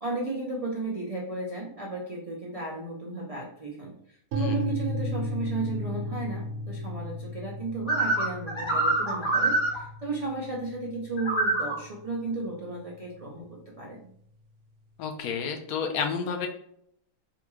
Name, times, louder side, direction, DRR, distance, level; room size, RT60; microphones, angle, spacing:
voice 1, 0.0-14.0, right 3 dB, 70° right, -3 dB, 0.3 m, -34 dB
sound 1, 4.3-12.2, left 1 dB, 85° right, 1.1 m, -35 dB
sound 2, 7.9-9.8 11.2-11.8, right 2 dB, 25° left, 0.9 m, -25 dB
voice 2, 15.0-16.5, left 6 dB, 85° left, 3 dB, 1.1 m, -30 dB
3.6 x 2.2 x 3.0 m, 0.70 s
omnidirectional pair, 1.5 m